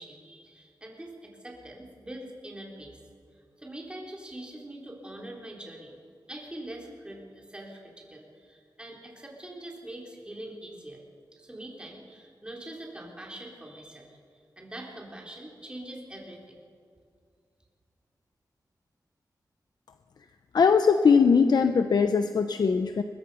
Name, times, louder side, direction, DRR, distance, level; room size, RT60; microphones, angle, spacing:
voice 1, 0.0-3.0 3.6-6.0 6.3-11.0 11.3-16.6, right 1 dB, 15° right, -2 dB, 4.0 m, -43 dB
voice 2, 20.5-23.0, left 5 dB, 75° left, 8 dB, 0.8 m, -21 dB
22.0 x 22.0 x 5.6 m, 2.2 s
wide cardioid pair, 130°, 7 cm